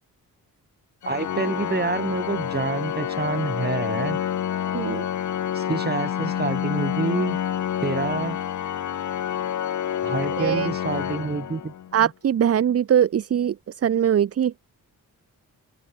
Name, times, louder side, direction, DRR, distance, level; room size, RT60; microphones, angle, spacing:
Organ, 1.0-12.0, left 10 dB, 55° left, 0.9 m, -28 dB
voice 1, 1.1-4.2 5.5-7.4 7.8-8.4 10.0-11.7 12.0-12.1, right 4 dB, 25° right, 4.6 m, -27 dB
voice 2, 4.7-5.0 10.4-10.7 11.9-13.5 13.8-14.5, right 9 dB, 40° right, 0.6 m, -21 dB
open air
wide cardioid pair, 145°, 36 cm